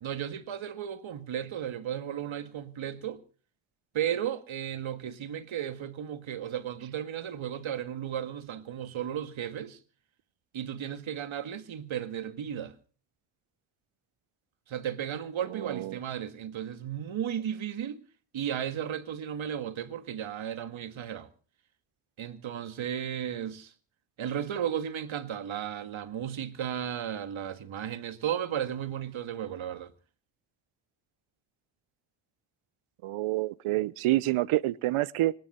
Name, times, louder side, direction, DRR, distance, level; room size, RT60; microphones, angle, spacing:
voice 1, 0.0-3.2 3.9-9.8 10.5-12.7 14.7-18.0 18.3-21.3 22.2-23.7 24.2-29.9, right 9 dB, 70° right, 1.9 m, -34 dB
voice 2, 15.5-16.0 33.0-35.3, right 17 dB, 90° right, 0.7 m, -28 dB
26.0 x 10.5 x 4.4 m
cardioid pair, 60°, 48 cm